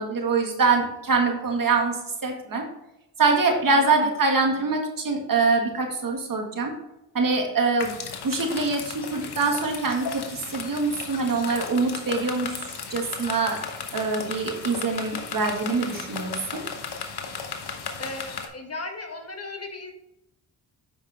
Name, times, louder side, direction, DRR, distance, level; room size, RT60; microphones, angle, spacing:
voice 1, 0.0-2.6 3.2-6.7 7.1-7.9 8.2-13.6 13.9-16.6, right 4 dB, 50° right, 2 dB, 1.9 m, -24 dB
voice 2, 3.7-4.1 18.0-19.9, left 3 dB, 35° left, 4 dB, 1.4 m, -37 dB
sound 1, 7.8-18.5, left 6 dB, 65° left, 1.2 m, -35 dB
8.5 x 5.9 x 3.5 m, 0.87 s
cardioid pair, 65°, 43 cm